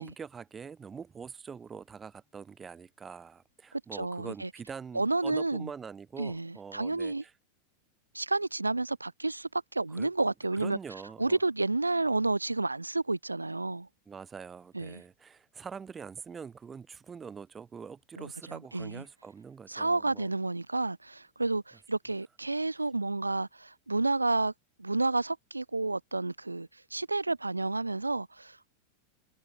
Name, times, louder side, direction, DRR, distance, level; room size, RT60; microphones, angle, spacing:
voice 1, 0.0-7.3 9.9-10.1 10.6-11.4 14.1-20.3, right 6 dB, 20° right, 0.4 m, -44 dB
voice 2, 3.7-4.5 4.9-5.7 6.2-7.2 8.1-10.8 11.2-13.9 14.7-15.0 18.2-19.0 19.7-24.5 24.8-28.7, right 2 dB, 80° right, 0.5 m, -30 dB
figure-of-eight pair, 90°, 0 cm